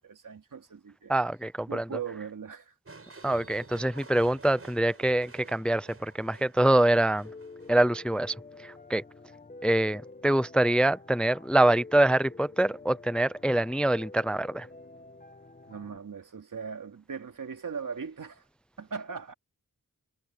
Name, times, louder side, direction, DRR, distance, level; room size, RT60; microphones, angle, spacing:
voice 1, 0.0-1.1 1.7-2.7 3.7-3.9 15.7-18.4 18.8-19.3, right 6 dB, 75° right, 2.7 m, -39 dB
voice 2, 1.1-1.8 3.2-7.3 7.7-8.3 8.6-9.0 9.6-14.7, right 1 dB, 5° left, 0.4 m, -25 dB
sound 1, 2.9-8.1, right 3 dB, 45° right, 6.9 m, -51 dB
Piano, 7.2-16.0, left 3 dB, 25° left, 1.1 m, -48 dB
wide cardioid pair, 75°, 33 cm